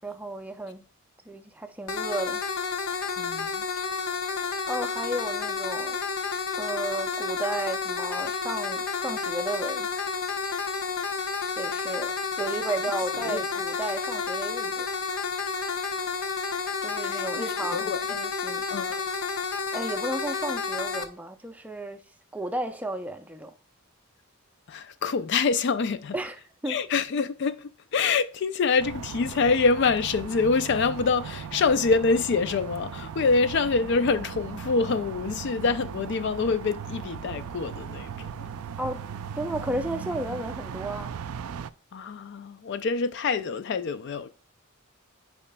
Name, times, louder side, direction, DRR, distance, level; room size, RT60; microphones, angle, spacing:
voice 1, 0.0-0.9 1.3-2.4 4.7-6.0 6.6-9.9 11.6-14.9 16.8-18.7 19.7-22.0 22.3-23.5 26.1-26.4 26.6-26.8 38.8-39.0 39.4-41.1, right 1 dB, 5° right, 0.5 m, -33 dB
sound 1, 1.9-21.1, left 5 dB, 70° left, 0.8 m, -30 dB
voice 2, 3.2-3.6 13.2-13.4 17.0-17.4 17.7-18.0 18.7-19.0 24.7-26.2 26.7-38.5 41.9-44.3, left 4 dB, 55° left, 0.4 m, -26 dB
sound 2, 28.8-41.7, right 7 dB, 85° right, 0.4 m, -38 dB
8.7 x 5.0 x 2.2 m
head